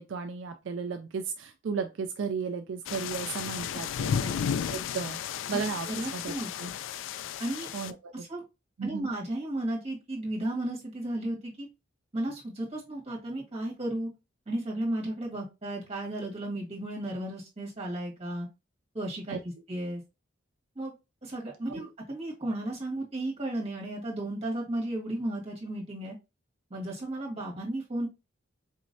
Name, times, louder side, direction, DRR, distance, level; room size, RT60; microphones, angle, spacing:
voice 1, 0.0-4.2 4.7-5.2 5.5-6.3 6.6-6.7 7.7-8.3 8.8-9.1 19.3-19.4 21.7-21.9, right 5 dB, 75° right, 6 dB, 0.4 m, -34 dB
sound 1, 2.9-7.9, left 8 dB, 75° left, 0.3 m, -33 dB
voice 2, 5.8-6.7 7.4-7.7 8.1-8.4 8.8-11.7 12.1-14.1 14.4-18.5 18.9-20.0 20.7-20.9 21.2-26.2 26.7-28.1, right 1 dB, 35° right, -3 dB, 1.6 m, -34 dB
4.4 x 3.0 x 2.6 m, 0.26 s
head